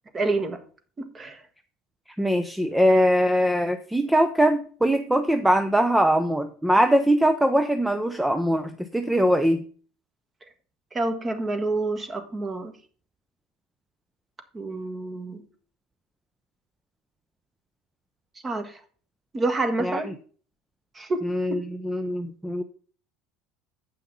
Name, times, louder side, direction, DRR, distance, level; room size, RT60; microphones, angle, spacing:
voice 1, 0.1-0.6 1.0-1.4 10.9-12.7 14.5-15.4 18.4-18.8 19.3-20.1 20.9-21.6, right 2 dB, 25° right, 8 dB, 1.5 m, -28 dB
voice 2, 2.2-9.6 19.8-20.1 21.2-22.6, equal, 5° right, 9 dB, 0.6 m, -22 dB
8.2 x 5.7 x 5.4 m, 0.42 s
supercardioid pair, 105°, 0 cm